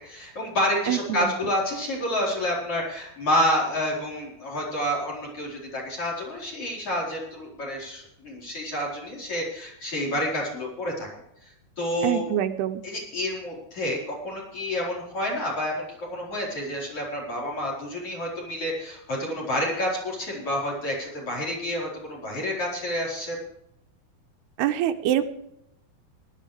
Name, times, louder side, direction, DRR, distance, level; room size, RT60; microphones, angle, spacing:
voice 1, 0.0-11.1 11.4-12.2 12.8-23.4, left 1 dB, 35° left, -3 dB, 5.1 m, -29 dB
voice 2, 0.9-1.3 12.0-12.8 24.6-25.3, right 11 dB, 90° right, 8 dB, 2.9 m, -25 dB
19.0 x 12.0 x 3.3 m, 0.80 s
omnidirectional pair, 4.5 m